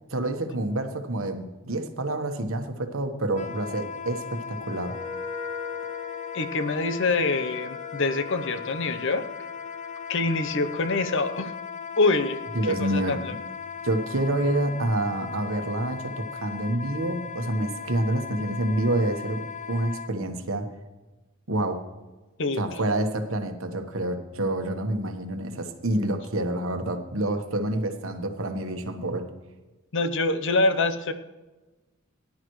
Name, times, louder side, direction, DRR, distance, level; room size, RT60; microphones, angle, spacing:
voice 1, 0.1-4.9 12.5-13.2 13.8-19.4 19.7-20.7 21.5-21.8 22.6-29.3, right 1 dB, 70° right, 6 dB, 1.3 m, -28 dB
Wind instrument woodwind instrument, 3.3-20.1, left 6 dB, 35° left, 0.6 m, -38 dB
Wind instrument woodwind instrument 2, 4.8-11.5, left 6 dB, 5° left, 1.1 m, -41 dB
voice 2, 6.3-9.3 10.1-11.5 12.0-13.3 22.4-22.8 29.9-31.1, left 3 dB, 65° left, 10 dB, 0.9 m, -25 dB
18.5 x 10.5 x 3.2 m, 1.2 s
head